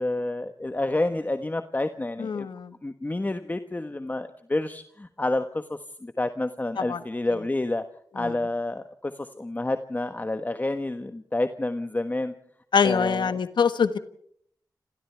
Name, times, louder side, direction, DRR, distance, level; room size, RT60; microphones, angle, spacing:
voice 1, 0.0-2.5 2.8-7.8 8.1-12.3 12.8-13.4, left 2 dB, 20° left, 8 dB, 1.3 m, -29 dB
voice 2, 2.2-2.7 6.8-7.0 8.2-8.3 12.7-14.0, left 6 dB, 85° left, 11 dB, 1.4 m, -24 dB
28.5 x 27.5 x 3.5 m, 0.64 s
wide cardioid pair, 75°, 8 cm